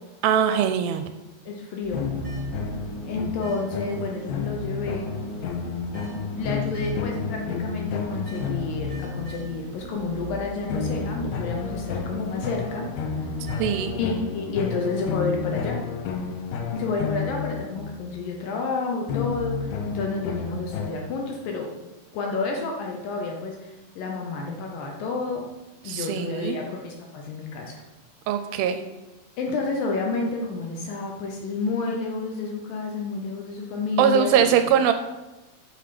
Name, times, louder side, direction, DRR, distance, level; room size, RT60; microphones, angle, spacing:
voice 1, 0.2-1.1 13.6-13.9 25.9-26.6 28.3-28.8 34.0-34.9, right 8 dB, 80° right, 8 dB, 2.3 m, -21 dB
voice 2, 1.5-2.1 3.0-5.1 6.4-12.9 13.9-15.8 16.7-21.7 22.1-25.5 25.8-27.8 29.4-34.6, left 4 dB, 70° left, 1 dB, 2.5 m, -30 dB
sound 1, 1.8-14.3, right 3 dB, 65° right, 0.9 m, -40 dB
sound 2, 1.9-9.6 10.7-18.2 19.1-20.9, left 5 dB, 90° left, 2.9 m, -31 dB
8.5 x 5.5 x 5.9 m, 1.1 s
omnidirectional pair, 4.5 m